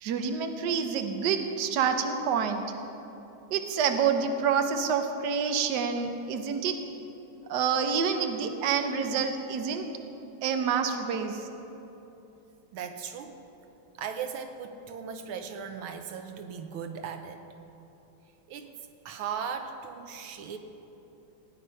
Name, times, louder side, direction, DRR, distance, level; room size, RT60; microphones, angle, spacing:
voice 1, 0.0-2.6 3.5-6.8 7.5-9.9 10.4-11.5, right 6 dB, 60° right, 6 dB, 1.3 m, -27 dB
voice 2, 12.7-13.3 14.0-17.4 18.5-18.7 19.0-20.6, right 7 dB, 90° right, 7 dB, 1.7 m, -37 dB
16.5 x 9.5 x 5.6 m, 2.9 s
omnidirectional pair, 2.2 m